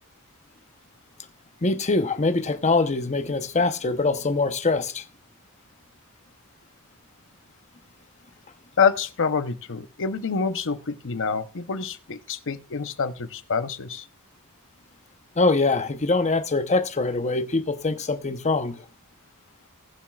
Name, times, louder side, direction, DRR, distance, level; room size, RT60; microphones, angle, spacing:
voice 1, 1.6-5.0 15.4-18.9, left 3 dB, 30° left, 0.9 m, -23 dB
voice 2, 8.8-14.1, left 5 dB, 60° left, 0.8 m, -26 dB
20.0 x 7.3 x 2.4 m
head